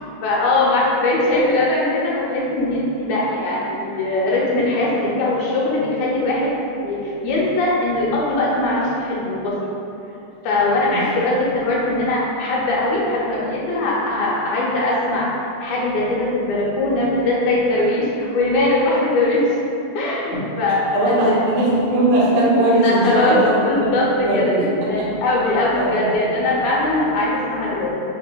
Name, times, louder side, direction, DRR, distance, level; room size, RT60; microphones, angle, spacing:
voice 1, 0.2-9.7 10.4-15.3 15.6-19.5 20.0-21.4 22.8-23.4 23.6-24.1 24.3-27.9, left 2 dB, 80° left, -5 dB, 1.9 m, -21 dB
voice 2, 20.9-23.7 24.2-25.1 25.7-26.3, right 1 dB, 65° right, -7 dB, 1.8 m, -19 dB
4.8 x 3.6 x 2.2 m, 2.8 s
omnidirectional pair, 3.5 m